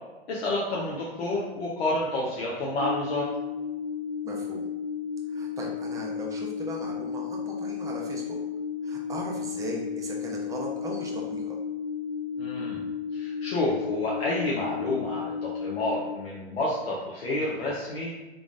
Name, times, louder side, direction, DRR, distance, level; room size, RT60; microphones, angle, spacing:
voice 1, 0.3-3.3 12.4-12.8 13.1-18.1, left 2 dB, 65° left, -5 dB, 0.9 m, -29 dB
sound 1, 2.8-16.0, left 6 dB, 35° right, 1.0 m, -33 dB
voice 2, 4.2-4.7 5.3-8.4 8.8-11.6, right 1 dB, 10° right, -1 dB, 0.5 m, -38 dB
3.8 x 3.4 x 2.5 m, 1.1 s
hypercardioid pair, 110°, 33 cm